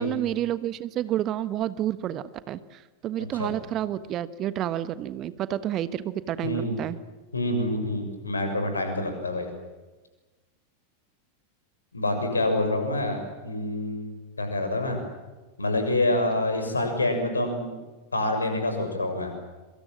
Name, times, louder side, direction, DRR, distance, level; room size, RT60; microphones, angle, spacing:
voice 1, 0.0-7.0, right 12 dB, 35° right, 15 dB, 1.3 m, -30 dB
voice 2, 6.4-6.7 7.3-9.5 11.9-14.1 14.4-15.0 15.6-17.7 18.1-19.3, left 1 dB, 75° left, 6 dB, 6.6 m, -27 dB
26.5 x 25.0 x 7.7 m, 1.2 s
figure-of-eight pair, 90°, 0 cm